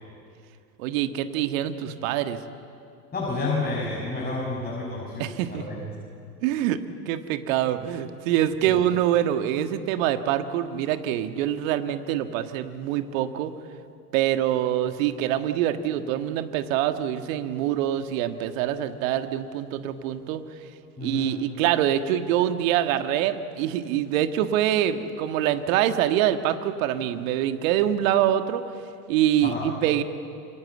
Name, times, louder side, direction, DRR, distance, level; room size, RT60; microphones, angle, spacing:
voice 1, 0.8-2.4 5.2-5.8 6.4-6.8 7.1-13.5 14.1-20.4 21.0-28.6 29.1-30.0, right 11 dB, 55° right, 9 dB, 1.8 m, -25 dB
voice 2, 3.1-5.8 8.7-8.8 21.0-21.3 29.4-29.7, left 3 dB, 20° left, -4 dB, 6.2 m, -30 dB
27.0 x 25.0 x 8.3 m, 2.4 s
figure-of-eight pair, 80°, 49 cm